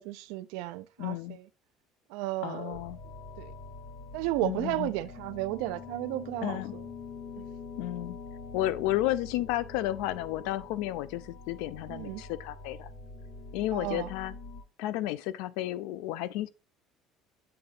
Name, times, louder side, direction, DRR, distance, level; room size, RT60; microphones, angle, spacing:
voice 1, 0.0-1.4 2.1-2.8 3.4-3.5 4.1-6.8 7.4-7.5 11.9-12.2 13.7-14.1, right 17 dB, 80° right, 0.4 m, -34 dB
voice 2, 1.0-1.4 2.4-3.0 4.4-4.9 6.4-6.7 7.8-8.2 8.5-12.9 13.5-14.3 14.8-16.5, left 14 dB, 80° left, 0.4 m, -32 dB
sound 1, 2.7-14.6, left 4 dB, 35° left, 2.3 m, -45 dB
7.7 x 3.8 x 3.8 m
cardioid pair, 180°, 0 cm